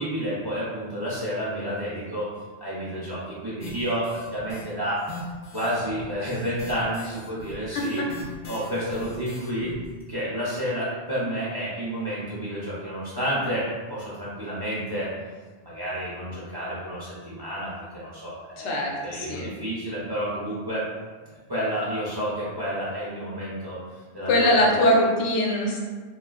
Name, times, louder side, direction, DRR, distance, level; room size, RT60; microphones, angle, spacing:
voice 1, 0.0-2.3 2.6-5.0 5.5-8.0 8.5-9.7 10.1-15.1 15.6-20.8 21.3-23.8 24.1-24.7, equal, 30° right, -9 dB, 0.5 m, -30 dB
sound 1, 3.6-4.6 5.0-9.9, left 1 dB, 55° left, 0.7 m, -41 dB
voice 2, 18.6-19.5 24.3-25.8, left 1 dB, 90° left, -1 dB, 0.9 m, -22 dB
2.9 x 2.3 x 2.4 m, 1.4 s
omnidirectional pair, 1.1 m